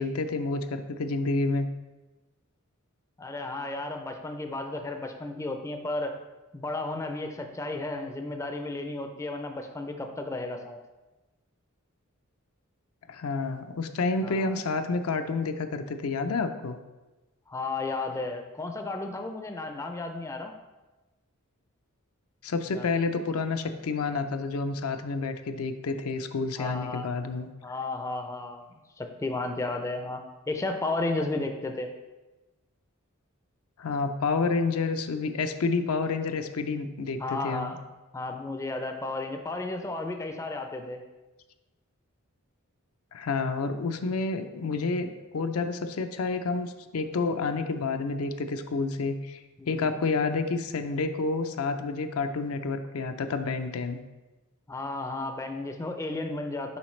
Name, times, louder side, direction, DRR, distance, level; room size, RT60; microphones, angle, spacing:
voice 1, 0.0-1.7 13.1-16.8 22.4-27.5 33.8-37.7 43.1-49.4 49.7-54.0, left 4 dB, 80° left, 8 dB, 0.5 m, -29 dB
voice 2, 3.2-6.1 6.5-10.8 14.2-14.6 17.5-20.5 22.7-22.9 26.6-27.1 27.6-31.9 37.2-37.8 38.1-41.0 49.6-49.9 51.8-52.0 54.7-56.8, left 2 dB, 15° left, 5 dB, 0.4 m, -33 dB
7.1 x 4.9 x 3.1 m, 1.1 s
head